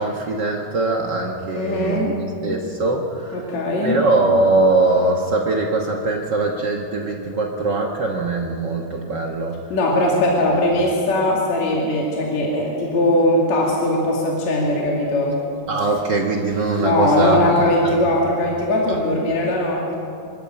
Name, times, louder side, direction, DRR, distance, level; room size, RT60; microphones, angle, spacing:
voice 1, 0.0-3.5 3.8-9.6 15.7-18.0 18.9-19.0, right 2 dB, 70° right, 1 dB, 1.0 m, -21 dB
voice 2, 1.5-2.1 3.3-4.0 9.7-15.4 16.8-20.0, left 1 dB, 55° left, -2 dB, 3.4 m, -20 dB
25.0 x 13.0 x 8.9 m, 2.8 s
omnidirectional pair, 4.0 m